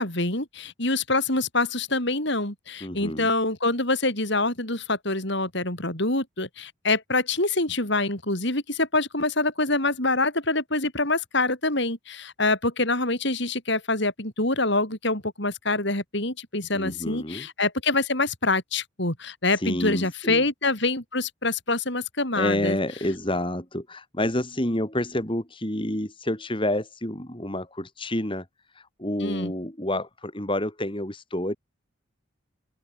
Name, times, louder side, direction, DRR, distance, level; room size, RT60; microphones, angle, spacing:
voice 1, 0.0-22.8 29.2-29.5, left 2 dB, 55° left, 6.0 m, -25 dB
voice 2, 2.8-3.3 16.7-17.5 19.5-20.4 22.4-28.4 28.7-31.6, left 1 dB, 25° left, 3.2 m, -29 dB
open air
head